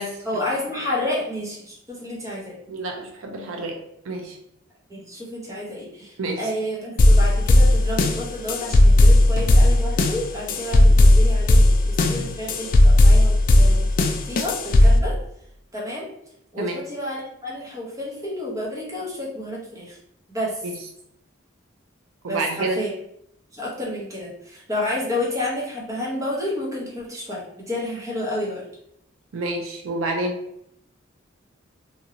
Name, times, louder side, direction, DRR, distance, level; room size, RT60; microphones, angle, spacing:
voice 1, 0.2-2.6 4.9-13.9 14.3-15.2 15.7-16.1 16.5-20.0 20.3-20.6 22.3-22.9 23.5-28.6, left 1 dB, 15° right, -4 dB, 0.8 m, -30 dB
voice 2, 2.7-3.8 4.0-4.4 6.2-6.5 10.8-10.9 16.6-16.8 20.6-20.7 22.2-22.8 29.3-30.4, right 2 dB, 85° right, 2 dB, 0.5 m, -28 dB
sound 1, 7.0-15.0, left 1 dB, 45° left, 0.3 m, -15 dB
2.7 x 2.6 x 2.8 m, 0.74 s
head